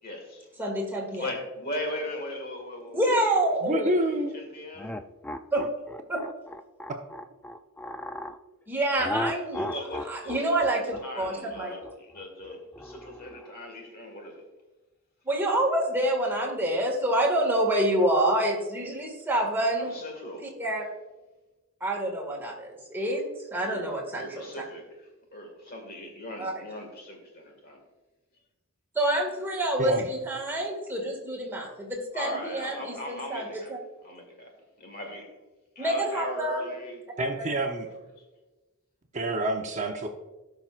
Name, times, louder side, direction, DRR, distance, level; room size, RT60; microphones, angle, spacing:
voice 1, 0.0-0.6 1.1-3.5 4.3-4.9 9.1-10.8 11.0-14.4 19.8-20.5 23.6-27.8 32.1-33.7 34.0-34.5 34.8-35.4 35.8-37.4 37.8-38.0, left 1 dB, 45° left, 2 dB, 1.8 m, -39 dB
voice 2, 0.6-1.3 2.9-3.9 5.5-5.7 6.1-6.2 8.7-9.6 10.1-11.7 15.3-19.9 20.4-20.8 21.8-24.5 26.4-26.5 29.0-33.8 35.8-36.7 37.4-37.5, right 1 dB, 10° right, -1 dB, 1.9 m, -27 dB
voice 3, 3.6-4.4 6.9-7.0 29.8-30.1 37.2-37.9 39.1-40.1, right 1 dB, 35° right, 3 dB, 0.7 m, -28 dB
sound 1, 4.8-8.4 9.0-13.5, left 1 dB, 5° left, 0.3 m, -36 dB
17.5 x 5.9 x 2.5 m, 1.1 s
head